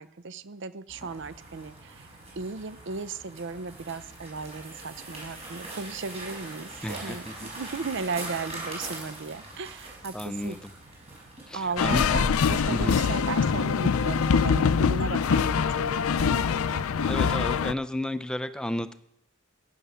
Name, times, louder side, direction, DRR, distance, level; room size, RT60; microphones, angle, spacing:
voice 1, 0.0-2.1 2.4-10.6 11.5-16.8, right 4 dB, 60° right, 15 dB, 0.6 m, -36 dB
sound 1, 0.9-17.4, right 2 dB, 30° right, 5.3 m, -43 dB
voice 2, 6.8-7.5 10.1-10.7 11.5-12.2 12.7-13.1 16.9-18.9, left 1 dB, 5° left, 11 dB, 0.5 m, -32 dB
sound 2, 11.8-17.7, left 6 dB, 85° left, 0.4 m, -24 dB
15.5 x 9.5 x 5.6 m, 0.76 s
head